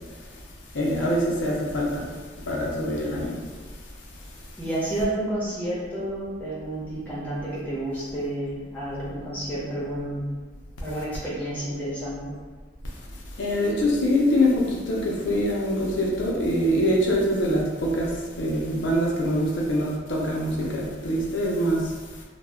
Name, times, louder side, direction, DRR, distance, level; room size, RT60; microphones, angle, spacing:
voice 1, 0.7-2.1 2.5-3.4 13.4-22.2, equal, 75° left, -3 dB, 0.5 m, -24 dB
voice 2, 4.6-10.2 10.8-12.4, right 1 dB, 10° left, -9 dB, 0.7 m, -30 dB
2.1 x 2.1 x 3.4 m, 1.3 s
head